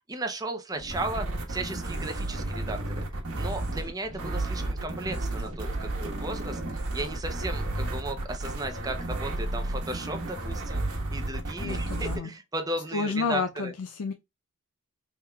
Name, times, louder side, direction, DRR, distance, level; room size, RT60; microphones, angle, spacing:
voice 1, 0.1-3.0 3.3-13.7, right 2 dB, 15° right, 0.6 m, -35 dB
sound 1, 0.8-12.2, right 2 dB, 80° right, 1.2 m, -32 dB
voice 2, 11.6-12.3 12.9-14.1, left 4 dB, 70° left, 0.4 m, -30 dB
4.5 x 3.6 x 2.2 m
head